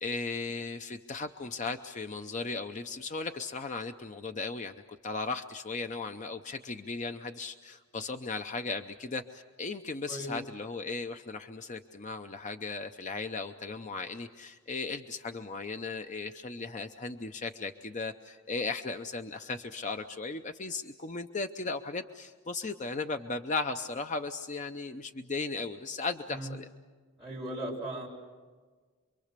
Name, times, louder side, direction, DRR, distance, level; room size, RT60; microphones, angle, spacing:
voice 1, 0.0-26.7, left 3 dB, 35° left, 7 dB, 0.7 m, -36 dB
voice 2, 27.2-28.1, right 1 dB, ahead, -7 dB, 6.4 m, -37 dB
27.5 x 23.5 x 6.7 m, 1.5 s
head